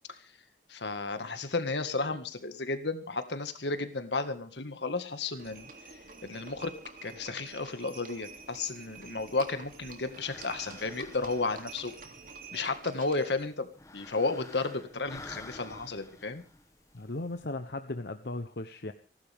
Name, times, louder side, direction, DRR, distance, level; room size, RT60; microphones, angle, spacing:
voice 1, 0.7-5.7 6.2-6.7 7.0-11.9 12.5-13.7 13.9-16.4, left 3 dB, 80° left, 9 dB, 1.9 m, -33 dB
Livestock farm animals working animals, 5.4-13.5, right 4 dB, 50° right, 3.0 m, -48 dB
sound 1, 8.2-17.4, left 2 dB, 20° left, 1.8 m, -52 dB
voice 2, 16.9-18.9, left 2 dB, 65° left, 8 dB, 1.0 m, -37 dB
29.5 x 12.0 x 3.6 m, 0.38 s
head